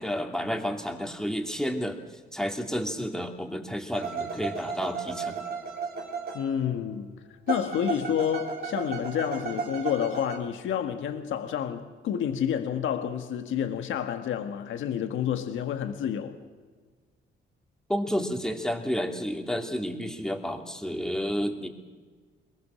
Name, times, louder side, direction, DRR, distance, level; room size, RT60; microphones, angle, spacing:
voice 1, 0.0-2.0 2.3-5.4 17.9-21.7, equal, 5° left, 2.8 m, -31 dB
sound 1, 3.9-6.9 7.5-10.4, right 5 dB, 50° right, 3.3 m, -34 dB
voice 2, 6.3-7.1 7.5-16.3, left 9 dB, 80° left, 1.6 m, -29 dB
22.5 x 21.0 x 6.4 m
cardioid pair, 90°, 20 cm